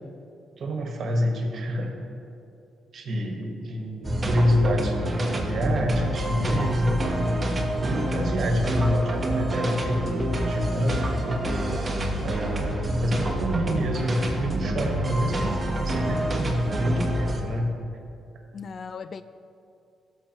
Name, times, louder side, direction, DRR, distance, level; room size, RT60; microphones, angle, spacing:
voice 1, 0.6-1.9 2.9-7.1 7.8-11.4 12.2-17.7, equal, 55° right, 2 dB, 1.5 m, -27 dB
sound 1, 4.0-17.4, right 1 dB, 25° right, 1.2 m, -27 dB
voice 2, 7.9-8.3 18.5-19.2, left 6 dB, 50° left, 13 dB, 0.3 m, -37 dB
15.5 x 6.6 x 3.0 m, 2.6 s
cardioid pair, 90°, 0 cm